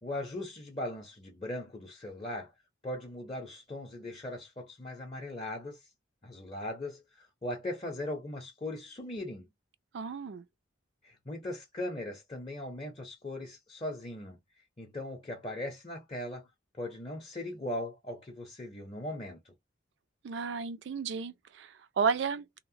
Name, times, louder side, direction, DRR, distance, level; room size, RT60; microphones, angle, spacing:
voice 1, 0.0-2.5 2.8-5.9 6.2-9.4 11.0-14.4 14.8-16.5 16.8-19.5, left 1 dB, 25° left, 0.6 m, -39 dB
voice 2, 9.9-10.4 20.2-22.6, right 5 dB, 65° right, 0.4 m, -33 dB
2.8 x 2.0 x 2.6 m
head